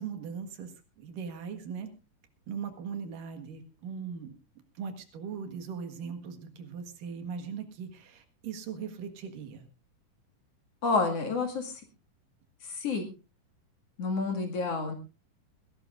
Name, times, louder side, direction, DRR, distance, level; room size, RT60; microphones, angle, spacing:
voice 1, 0.0-1.9 2.5-4.4 4.7-9.7, right 6 dB, 80° right, 7 dB, 3.3 m, -39 dB
voice 2, 10.8-11.7 12.6-13.1 14.0-14.9, left 4 dB, 50° left, 3 dB, 3.0 m, -29 dB
20.5 x 17.0 x 2.5 m, 0.29 s
omnidirectional pair, 3.8 m